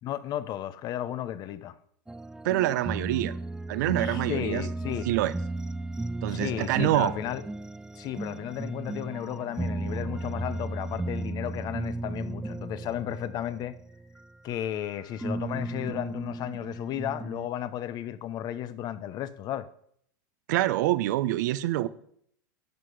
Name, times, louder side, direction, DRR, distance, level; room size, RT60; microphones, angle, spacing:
voice 1, 0.0-1.8 4.0-5.1 6.3-7.4 8.0-13.7 14.4-19.7, left 11 dB, 40° left, 0.9 m, -34 dB
sound 1, 2.1-14.9 15.2-17.5, right 2 dB, 5° right, 0.3 m, -35 dB
voice 2, 2.4-3.3 3.7-4.7 5.0-5.3 6.2-7.1 20.5-21.9, right 15 dB, 65° right, 0.8 m, -26 dB
12.0 x 7.7 x 4.9 m
hypercardioid pair, 105°, 10 cm